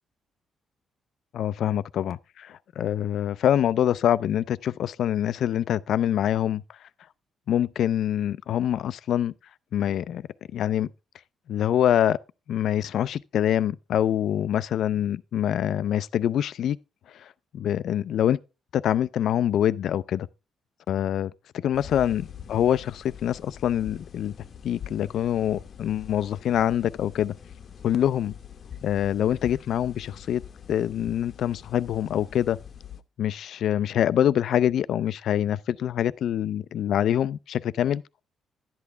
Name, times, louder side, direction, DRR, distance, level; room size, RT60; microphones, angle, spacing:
voice 1, 1.3-6.6 7.5-9.3 9.7-10.3 10.5-10.9 11.5-12.2 12.5-16.8 17.2-18.4 18.7-20.3 20.9-21.3 21.6-24.3 24.6-27.3 27.8-28.3 28.8-30.4 30.7-32.6 33.2-38.0, left 10 dB, 70° left, 0.4 m, -25 dB
sound 1, 21.7-33.0, left 8 dB, 50° left, 0.8 m, -44 dB
11.0 x 8.5 x 3.4 m
cardioid pair, 90°, 0 cm